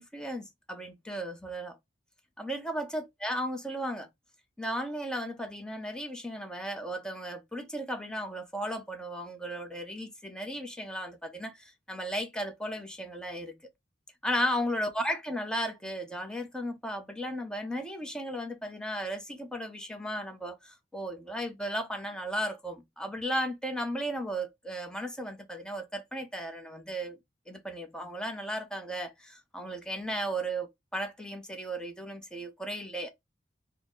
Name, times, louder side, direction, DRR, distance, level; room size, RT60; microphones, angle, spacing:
voice 1, 0.0-1.8 2.4-4.1 4.6-13.5 14.2-27.2 27.5-33.1, equal, 5° left, 0.6 m, -35 dB
4.1 x 2.0 x 3.7 m
head